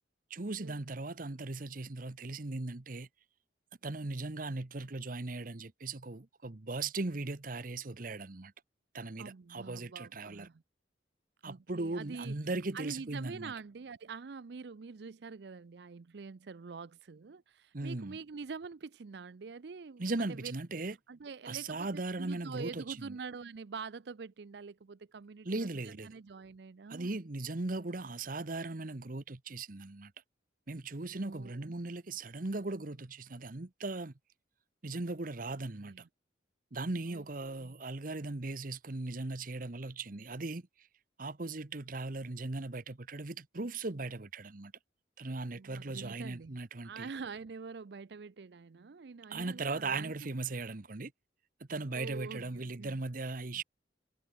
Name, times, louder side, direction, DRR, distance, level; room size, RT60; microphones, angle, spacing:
voice 1, 0.3-3.1 3.8-8.5 8.9-10.5 11.4-13.5 17.7-18.2 20.0-21.0 21.5-23.2 25.4-26.1 26.9-30.1 30.7-34.1 34.8-35.9 36.7-40.9 41.2-44.7 45.2-47.1 49.3-51.1 51.7-53.6, right 3 dB, 45° right, 1.0 m, -38 dB
voice 2, 9.2-10.6 11.5-12.4 12.7-20.5 21.1-21.9 22.2-27.1 31.2-31.6 35.8-36.0 37.1-37.7 45.5-46.6 46.8-50.1 51.9-53.0, right 5 dB, 60° right, 0.5 m, -45 dB
head